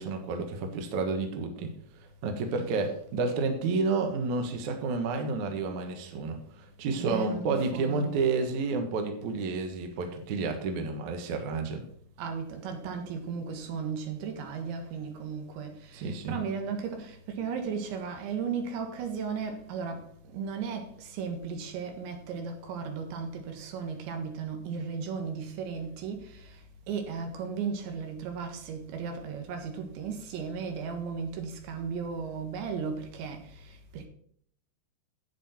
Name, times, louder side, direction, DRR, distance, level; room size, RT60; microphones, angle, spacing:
voice 1, 0.0-1.7 2.2-11.8 15.9-16.4, right 4 dB, 55° right, 2.3 m, -30 dB
voice 2, 6.9-8.2 12.2-34.1, right 6 dB, 80° right, 3.9 m, -36 dB
10.5 x 8.7 x 4.4 m
omnidirectional pair, 5.1 m